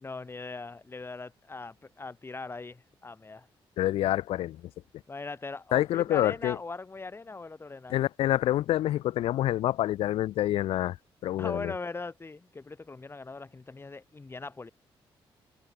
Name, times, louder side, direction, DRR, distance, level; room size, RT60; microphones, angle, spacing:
voice 1, 0.0-3.5 5.1-8.0 11.4-14.7, left 3 dB, 25° left, 2.4 m, -40 dB
voice 2, 3.8-4.6 5.7-6.6 7.9-11.0 11.2-11.7, left 13 dB, 80° left, 0.4 m, -27 dB
cardioid pair, 90°, 10 cm